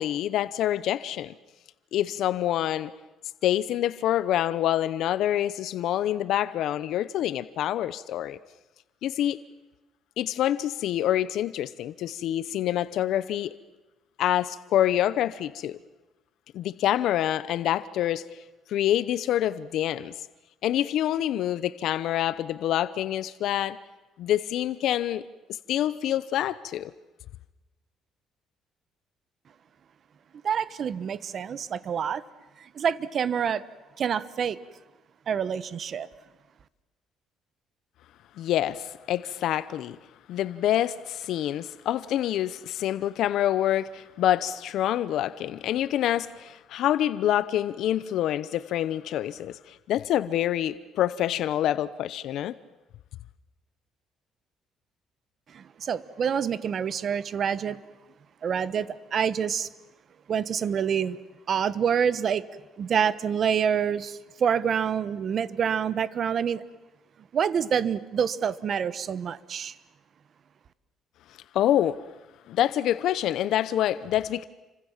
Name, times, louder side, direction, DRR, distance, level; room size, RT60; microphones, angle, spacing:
voice 1, 0.0-1.3 1.9-2.9 3.4-8.4 9.0-9.4 10.2-13.6 14.2-15.8 16.5-18.2 18.7-20.1 20.6-23.8 24.2-25.2 25.7-26.9 38.4-40.0 40.3-52.5 71.5-72.0 72.5-74.5, left 12 dB, 70° left, 0.8 m, -26 dB
voice 2, 30.4-32.2 32.6-33.7 34.0-34.6 35.3-36.1 55.5-57.8 58.4-59.7 60.3-61.2 61.5-62.4 62.8-66.6 67.3-69.8, right 7 dB, 45° right, 1.1 m, -27 dB
30.0 x 25.0 x 7.4 m
cardioid pair, 130°, 0 cm